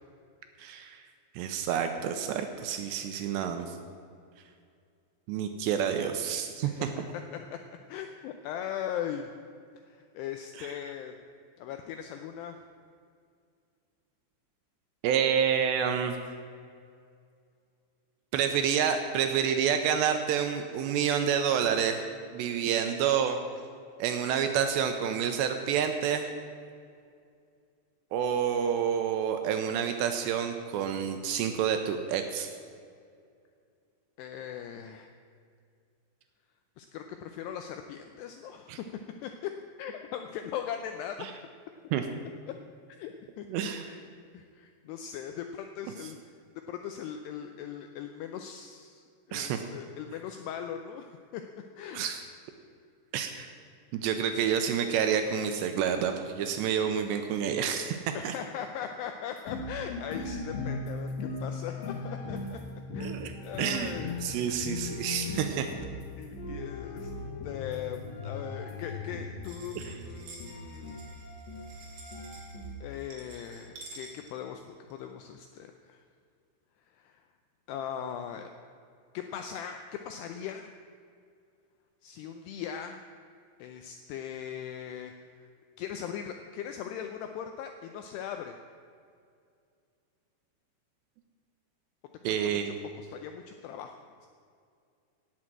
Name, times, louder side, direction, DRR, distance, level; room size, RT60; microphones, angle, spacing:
voice 1, 0.6-1.0 1.4-3.8 5.3-6.9 10.6-10.7 15.0-16.2 18.3-22.0 22.3-23.4 24.0-26.3 28.1-32.5 38.7-38.8 41.2-41.3 41.9-42.0 43.5-43.9 49.3-49.6 51.9-52.2 53.1-53.5 53.9-58.0 58.2-58.3 63.0-63.3 63.6-65.7 69.8-70.0 92.2-92.8, right 8 dB, 80° right, 6 dB, 2.6 m, -28 dB
voice 2, 7.9-9.3 9.9-11.1 11.6-12.6 34.2-35.1 36.8-38.8 39.2-39.5 39.8-41.3 42.9-43.1 43.4-44.0 44.3-46.2 46.7-49.0 49.3-51.4 51.8-52.1 58.1-62.6 62.9-64.2 66.2-67.1 67.4-71.0 72.8-74.6 74.9-76.0 77.0-77.1 77.7-78.5 79.1-80.7 82.0-83.0 83.6-85.1 85.8-88.6 92.3-92.4 92.6-93.9, left 9 dB, 85° left, 6 dB, 2.4 m, -39 dB
sound 1, 59.4-72.8, left 3 dB, 65° left, 1.9 m, -39 dB
sound 2, 60.5-68.2, left 3 dB, 20° right, 3.5 m, -43 dB
sound 3, 69.4-75.0, right 2 dB, 55° right, 3.4 m, -50 dB
17.0 x 6.4 x 7.5 m, 2.3 s
omnidirectional pair, 5.4 m